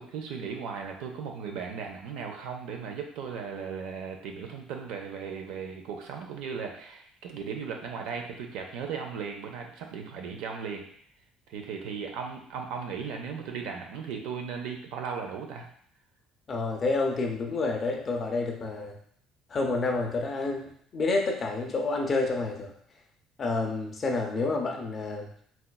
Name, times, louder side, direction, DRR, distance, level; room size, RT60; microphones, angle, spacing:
voice 1, 0.0-10.8 11.5-15.7, right 6 dB, 70° right, 3 dB, 0.5 m, -37 dB
voice 2, 16.5-19.0 19.5-22.7 23.4-25.3, left 3 dB, 25° left, 1 dB, 0.4 m, -29 dB
4.1 x 2.3 x 2.2 m, 0.62 s
cardioid pair, 165°, 0 cm